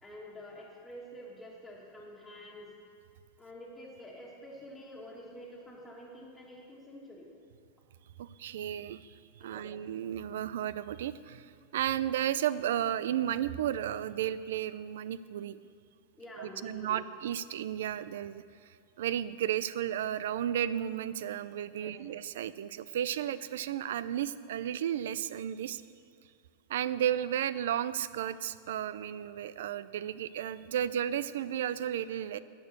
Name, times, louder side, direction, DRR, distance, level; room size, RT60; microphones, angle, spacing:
voice 1, 0.0-2.7 3.4-7.3 9.5-9.7 16.2-17.0 21.7-22.0, left 1 dB, 5° left, -6 dB, 1.8 m, -48 dB
voice 2, 8.2-15.6 16.4-18.4 19.0-25.8 26.7-32.4, right 10 dB, 80° right, 16 dB, 0.4 m, -33 dB
11.0 x 6.9 x 6.6 m, 2.3 s
supercardioid pair, 145°, 0 cm